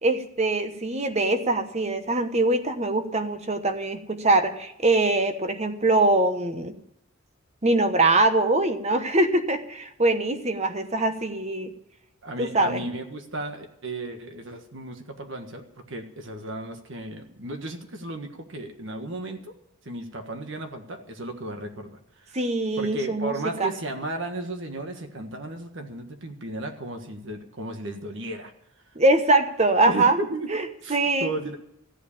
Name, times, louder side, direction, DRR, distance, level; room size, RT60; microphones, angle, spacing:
voice 1, 0.0-6.8 7.6-11.7 12.4-12.8 22.3-23.3 23.6-23.7 28.9-30.2 30.5-30.6 30.9-31.3, right 2 dB, 30° right, 8 dB, 1.1 m, -23 dB
voice 2, 12.2-19.5 19.8-22.4 22.8-28.5 29.8-30.5 30.8-31.6, right 2 dB, 60° right, 5 dB, 1.6 m, -34 dB
14.5 x 8.1 x 8.6 m, 0.77 s
head